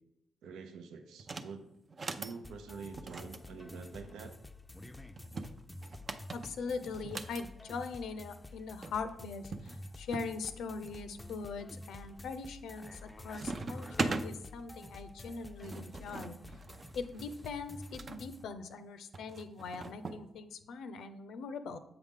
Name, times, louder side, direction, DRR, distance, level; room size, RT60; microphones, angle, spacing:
voice 1, 0.4-1.7 2.1-4.3, right 5 dB, 90° right, 6 dB, 0.6 m, -46 dB
sound 1, 1.2-1.5 1.9-2.4 3.0-4.4 5.2-7.4 8.5-8.6 8.8-8.9 9.5-10.3 10.9-11.4 11.9-12.3 12.6-13.0 13.3-14.3 15.2-18.2 19.1-20.2, right 3 dB, 45° right, 0.5 m, -40 dB
sound 2, 2.4-18.4, left 2 dB, 10° left, 0.4 m, -50 dB
voice 2, 6.3-16.4 16.9-21.8, left 4 dB, 85° left, 9 dB, 0.5 m, -41 dB
7.8 x 4.8 x 3.7 m, 0.83 s
cardioid pair, 80°, 0 cm